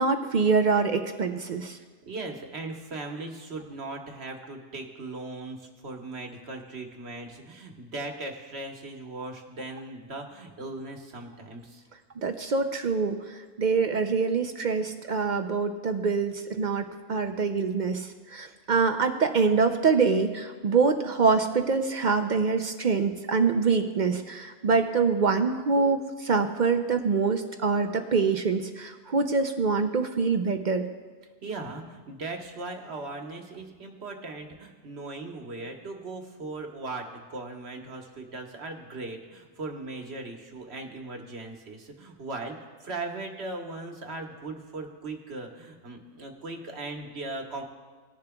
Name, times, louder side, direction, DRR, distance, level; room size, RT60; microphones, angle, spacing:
voice 1, 0.0-1.8 12.2-30.9, right 4 dB, 50° right, 6 dB, 0.6 m, -25 dB
voice 2, 2.1-11.8 31.4-47.6, right 2 dB, 70° right, 3 dB, 1.5 m, -38 dB
19.5 x 10.5 x 2.3 m, 1.5 s
omnidirectional pair, 1.1 m